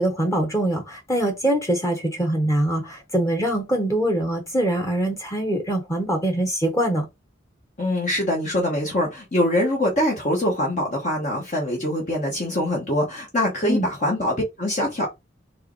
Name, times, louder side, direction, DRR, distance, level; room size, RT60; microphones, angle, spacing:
voice 1, 0.0-7.1 13.6-13.9, right 1 dB, 15° left, 1.1 m, -23 dB
voice 2, 7.8-15.1, left 1 dB, 40° left, 1.2 m, -23 dB
4.7 x 3.2 x 3.1 m
head